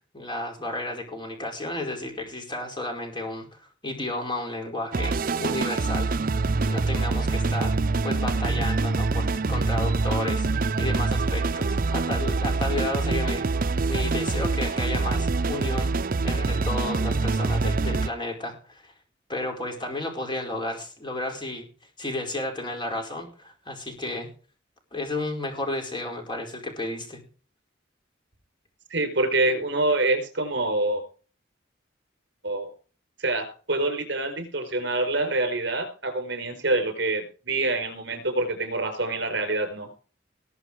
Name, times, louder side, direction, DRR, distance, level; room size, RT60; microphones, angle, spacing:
voice 1, 0.1-5.1 5.4-6.1 6.7-7.8 8.0-10.5 10.8-13.5 13.9-15.9 16.2-18.9 19.3-21.7 22.0-24.3 24.9-27.2, left 2 dB, 25° left, 3 dB, 4.9 m, -32 dB
sound 1, 4.9-18.1, right 3 dB, 50° right, 0.6 m, -25 dB
voice 2, 28.9-31.0 32.4-32.7 33.2-39.9, right 2 dB, 65° right, 7 dB, 5.1 m, -26 dB
20.0 x 6.8 x 4.8 m, 0.39 s
head